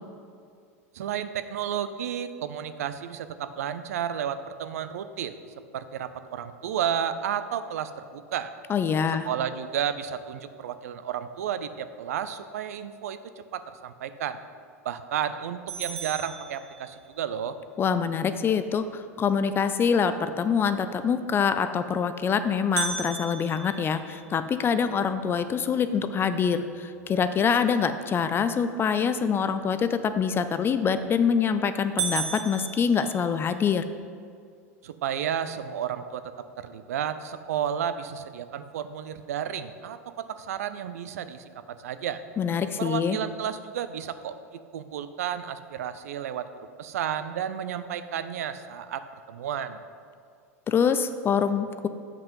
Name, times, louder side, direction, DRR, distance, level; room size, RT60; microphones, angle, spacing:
voice 1, 0.9-5.3 5.7-8.5 9.2-13.2 13.5-14.4 14.8-17.6 34.8-36.2 36.6-42.2 42.8-46.5 46.8-49.8, right 9 dB, 75° right, 11 dB, 0.5 m, -32 dB
voice 2, 8.7-9.3 17.8-33.8 42.4-43.2 50.7-51.9, left 6 dB, 25° left, 11 dB, 0.4 m, -25 dB
sound 1, 15.7-17.3 22.8-24.9 25.4-25.5 26.0-26.1 26.8-27.1 30.7-31.1 31.5-31.6 32.0-33.7, right 7 dB, 60° right, 0.8 m, -35 dB
7.7 x 5.4 x 5.3 m, 2.3 s
hypercardioid pair, 90°, 8 cm